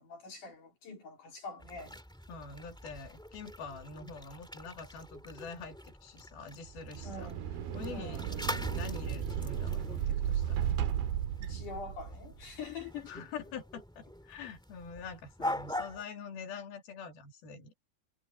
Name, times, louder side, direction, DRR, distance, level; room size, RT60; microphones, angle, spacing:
voice 1, 0.0-2.0 7.0-7.6 7.9-8.3 11.4-13.3, left 4 dB, 55° left, 4.9 m, -45 dB
sound 1, 1.6-16.0, left 1 dB, ahead, 1.0 m, -43 dB
voice 2, 2.3-7.3 7.7-10.7 13.1-17.9, left 5 dB, 75° left, 4.7 m, -45 dB
sound 2, 6.7-12.3, right 10 dB, 75° right, 3.2 m, -34 dB
omnidirectional pair, 4.4 m